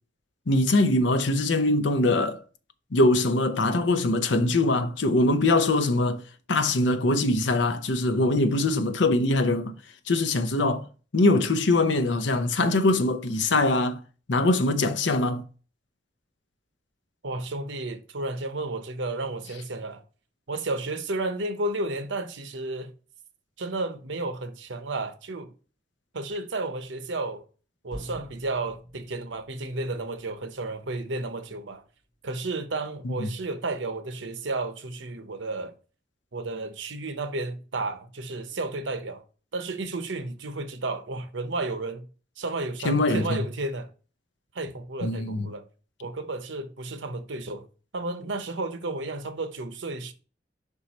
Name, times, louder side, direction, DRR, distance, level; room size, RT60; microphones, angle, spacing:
voice 1, 0.5-2.4 2.9-6.2 6.5-9.7 10.1-10.9 11.1-14.0 14.3-15.4 33.0-33.3 42.8-43.4 45.0-45.5, left 2 dB, 80° left, 0.7 m, -23 dB
voice 2, 17.2-20.0 20.5-22.9 23.6-25.5 26.1-27.4 27.8-31.8 32.2-35.7 36.3-39.2 39.5-42.1 42.4-43.9 44.5-45.6 46.0-47.7 47.9-50.1, right 2 dB, 90° right, 0.8 m, -32 dB
sound 1, 27.9-31.8, equal, 40° left, 1.4 m, -46 dB
5.4 x 4.6 x 4.1 m
head